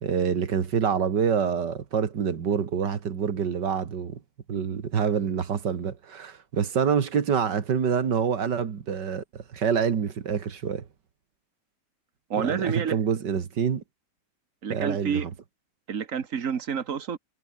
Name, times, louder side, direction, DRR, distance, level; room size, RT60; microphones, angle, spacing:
voice 1, 0.0-4.2 4.5-10.9 12.4-13.8 14.7-15.3, right 7 dB, 90° right, 2.4 m, -26 dB
voice 2, 12.3-13.0 14.6-15.3 15.9-17.2, right 7 dB, 50° right, 1.7 m, -29 dB
omnidirectional pair, 1.8 m